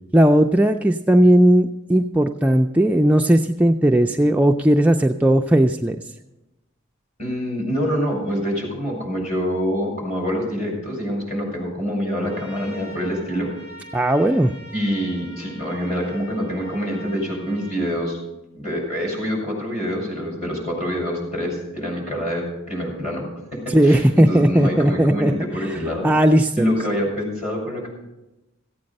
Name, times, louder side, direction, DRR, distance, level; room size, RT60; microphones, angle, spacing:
voice 1, 0.1-6.0 13.9-14.5 23.7-25.3 25.6-26.7, right 1 dB, 5° right, 3 dB, 0.3 m, -17 dB
voice 2, 7.2-13.5 14.7-18.2 18.5-26.1 26.5-27.9, equal, 35° left, -1 dB, 5.4 m, -26 dB
Trumpet, 12.2-17.9, equal, 90° left, 5.4 m, -44 dB
15.5 x 8.7 x 5.3 m, 0.97 s
head